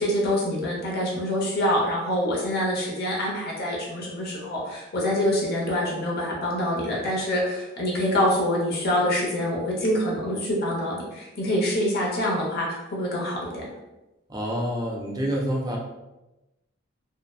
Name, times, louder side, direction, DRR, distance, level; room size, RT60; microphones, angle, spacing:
voice 1, 0.0-13.7, left 1 dB, 50° left, -3 dB, 0.6 m, -25 dB
voice 2, 14.3-15.8, equal, 20° right, -2 dB, 0.4 m, -27 dB
2.6 x 2.1 x 2.3 m, 1.0 s
head